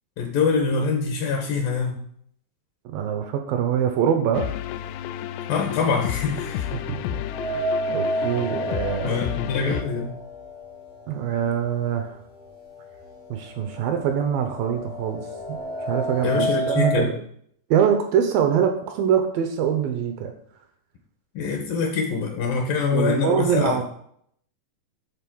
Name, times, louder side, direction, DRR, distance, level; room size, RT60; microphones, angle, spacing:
voice 1, 0.2-2.0 5.5-6.7 9.0-10.1 16.2-17.1 21.4-23.8, left 5 dB, 70° left, 2 dB, 2.5 m, -24 dB
voice 2, 2.9-4.5 6.7-7.2 7.9-9.3 11.1-12.2 13.3-15.6 15.8-17.2 17.7-20.3 22.9-23.8, right 8 dB, 75° right, 6 dB, 2.2 m, -24 dB
sound 1, 4.3-9.8, left 11 dB, 85° left, 2.6 m, -31 dB
sound 2, 7.3-11.3 11.7-11.8 12.7-12.8 13.2-17.1, right 1 dB, 50° left, 0.8 m, -30 dB
10.5 x 4.0 x 6.2 m, 0.67 s
omnidirectional pair, 4.7 m